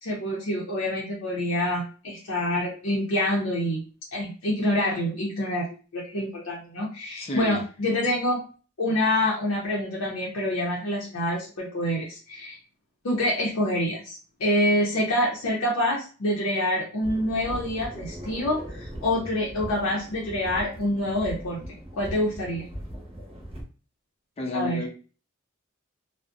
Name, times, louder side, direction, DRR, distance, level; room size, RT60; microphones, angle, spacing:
voice 1, 0.0-3.8 4.1-5.7 5.9-8.4 8.8-12.6 13.0-21.6 21.9-22.6 24.5-24.9, left 1 dB, 80° left, -4 dB, 0.6 m, -26 dB
voice 2, 7.2-7.6 24.4-24.9, left 2 dB, 30° left, 0 dB, 0.5 m, -29 dB
sound 1, 17.0-23.6, equal, 25° right, 0.8 m, -39 dB
2.5 x 2.0 x 2.4 m, 0.36 s
head